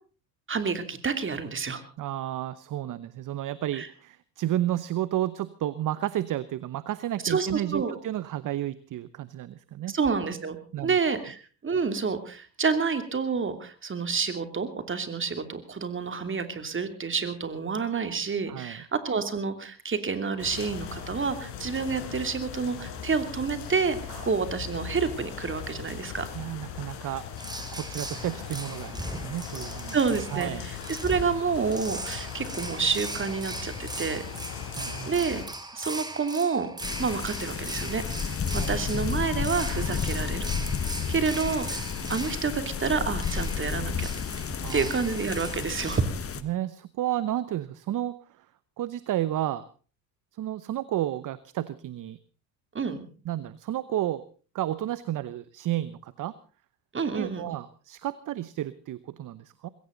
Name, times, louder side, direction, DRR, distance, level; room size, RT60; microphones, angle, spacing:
voice 1, 0.5-1.8 3.7-3.9 7.2-7.9 9.9-10.6 10.8-26.3 29.9-30.8 31.0-34.2 35.1-35.4 35.7-36.7 37.0-38.0 38.7-40.5 41.1-44.1 44.7-46.0 52.7-53.1 56.9-57.5, right 5 dB, 25° right, 9 dB, 2.9 m, -29 dB
voice 2, 2.0-10.0 10.7-11.0 18.5-18.8 24.1-24.3 26.3-27.2 27.7-30.0 30.3-30.7 34.8-35.2 38.6-38.8 44.6-44.9 46.4-48.5 48.8-49.7 50.3-52.2 53.2-54.2 54.5-56.3 57.1-59.7, right 13 dB, 40° right, 16 dB, 0.9 m, -32 dB
sound 1, 20.4-35.5, left 8 dB, 55° left, 4.8 m, -39 dB
sound 2, 27.4-46.0, right 2 dB, 10° right, 2.8 m, -39 dB
sound 3, 36.8-46.4, left 6 dB, 25° left, 1.5 m, -32 dB
21.0 x 17.0 x 4.0 m, 0.37 s
hypercardioid pair, 85°, 50 cm